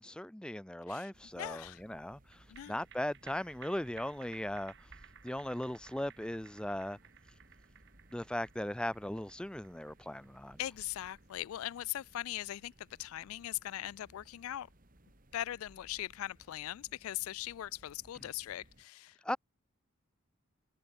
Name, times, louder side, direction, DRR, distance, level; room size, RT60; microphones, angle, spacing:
voice 1, 0.0-2.2 2.7-4.7 5.2-7.0 8.1-10.6 19.2-19.4, left 1 dB, 5° left, 0.4 m, -38 dB
sound 1, 1.1-18.8, right 1 dB, 40° right, 2.8 m, -63 dB
voice 2, 1.4-1.8 2.5-2.8 10.6-14.7 15.3-19.4, left 13 dB, 75° left, 0.3 m, -40 dB
sound 2, 2.3-15.0 15.3-15.4, right 8 dB, 55° right, 4.5 m, -59 dB
head